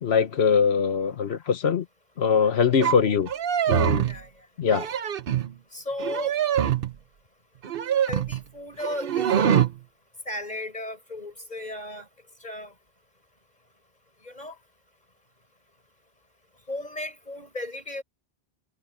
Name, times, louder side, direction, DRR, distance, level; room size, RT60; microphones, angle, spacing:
voice 1, 0.0-1.8 2.2-3.3 3.7-4.1 4.6-4.9, left 6 dB, 70° left, 1.2 m, -22 dB
sound 1, 2.8-3.0 3.2-4.2 4.6-5.5 6.0-6.9 7.6-8.4 8.8-9.7, right 9 dB, 60° right, 0.9 m, -24 dB
voice 2, 5.7-6.4 8.1-9.7 10.3-12.1 12.4-12.7 14.2-14.6 16.7-18.0, left 1 dB, 40° left, 6.2 m, -35 dB
omnidirectional pair, 1.1 m